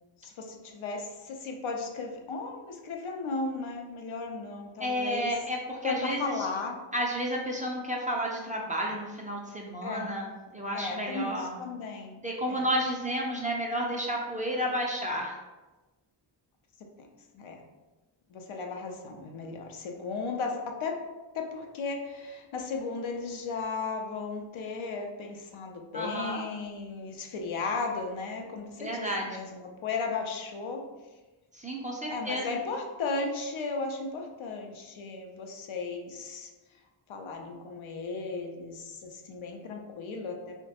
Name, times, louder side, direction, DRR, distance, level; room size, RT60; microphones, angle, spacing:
voice 1, 0.2-5.3 5.8-6.8 9.8-10.1 10.7-12.7 17.0-17.1 17.3-17.6 18.3-21.0 21.3-30.8 32.1-36.5 37.1-40.6, left 4 dB, 80° left, 2 dB, 0.5 m, -35 dB
voice 2, 4.8-6.5 6.9-11.6 12.2-15.4 25.9-26.4 28.8-29.3 31.5-32.4, equal, 20° right, -2 dB, 0.4 m, -31 dB
2.9 x 2.1 x 2.8 m, 1.2 s
wide cardioid pair, 75°, 48 cm